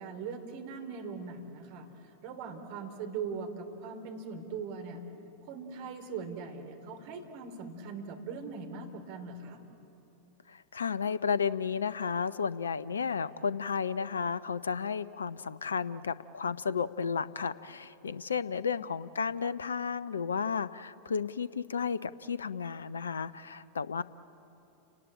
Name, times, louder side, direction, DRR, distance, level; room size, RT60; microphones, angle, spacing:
voice 1, 0.0-1.9 2.2-5.0 5.4-9.6, right 5 dB, 50° right, 5 dB, 3.2 m, -40 dB
voice 2, 10.5-24.0, left 6 dB, 70° left, 18 dB, 0.6 m, -33 dB
30.0 x 18.5 x 9.0 m, 2.9 s
figure-of-eight pair, 90°, 0 cm